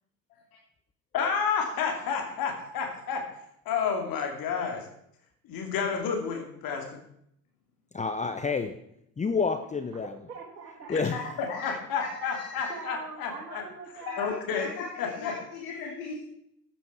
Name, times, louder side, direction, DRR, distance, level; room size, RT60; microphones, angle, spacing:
voice 1, 1.1-3.2 3.7-4.8 5.5-7.0 11.4-13.6 14.2-14.7 15.0-15.3, left 6 dB, 45° left, 2 dB, 2.7 m, -30 dB
voice 2, 7.9-8.8 9.2-10.1 10.9-11.2, left 5 dB, 15° left, 7 dB, 0.9 m, -28 dB
voice 3, 10.3-11.0 11.4-11.5 12.7-14.3, right 4 dB, 80° right, -2 dB, 2.1 m, -42 dB
voice 4, 10.9-12.8 14.1-16.2, left 4 dB, 65° left, 0 dB, 2.4 m, -38 dB
14.5 x 9.1 x 4.7 m, 0.72 s
figure-of-eight pair, 60°, 47 cm